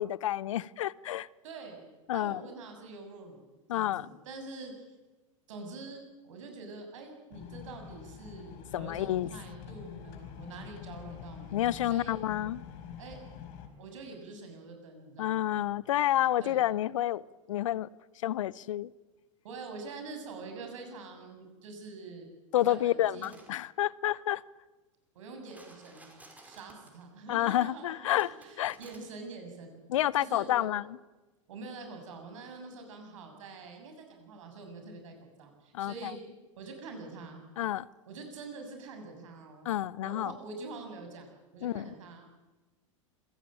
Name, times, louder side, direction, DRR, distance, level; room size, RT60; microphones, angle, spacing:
voice 1, 0.0-1.3 2.1-2.4 3.7-4.1 8.7-9.3 11.5-12.6 15.2-17.2 17.5-17.9 18.2-18.9 22.5-24.4 27.3-28.8 29.9-30.8 35.7-36.1 37.6-37.8 39.6-40.3 41.6-41.8, left 13 dB, 70° left, 0.7 m, -29 dB
voice 2, 1.4-1.8 2.1-4.9 5.5-11.6 11.8-12.2 13.0-13.2 13.8-15.5 16.4-16.6 19.4-22.3 22.6-23.4 25.1-26.1 26.4-29.8 30.1-30.7 31.5-36.2 36.6-37.4 38.1-39.7 40.0-41.3 41.5-42.2, right 3 dB, 70° right, 7.2 m, -45 dB
sound 1, 7.3-13.7, left 8 dB, 55° left, 5.0 m, -46 dB
sound 2, 23.1-23.5 25.4-27.0 28.2-29.0, right 2 dB, 10° right, 5.7 m, -55 dB
26.0 x 17.0 x 9.0 m
hypercardioid pair, 90°, 17 cm